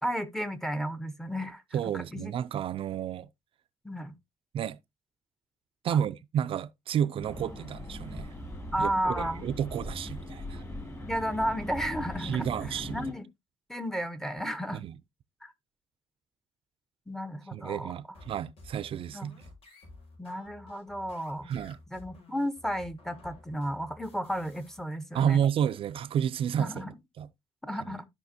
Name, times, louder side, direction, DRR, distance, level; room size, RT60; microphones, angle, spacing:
voice 1, 0.0-1.6 1.9-2.3 3.8-4.1 5.9-6.0 8.7-9.5 11.1-12.5 12.9-13.3 13.7-14.8 15.4-15.5 17.1-17.9 19.1-19.3 20.2-21.5 21.9-25.4 26.5-26.9 27.6-28.0, equal, 5° left, 0.8 m, -33 dB
voice 2, 1.7-3.3 4.5-4.8 5.8-8.3 8.8-10.6 12.2-13.1 14.7-15.0 17.5-19.4 21.5-21.8 25.1-26.8 27.2-27.3 27.9-28.0, right 9 dB, 65° right, 0.4 m, -31 dB
sound 1, 7.2-13.1, left 1 dB, 25° left, 2.3 m, -40 dB
sound 2, 18.1-24.8, left 2 dB, 70° left, 5.1 m, -52 dB
12.5 x 5.0 x 2.7 m
wide cardioid pair, 160°, 10 cm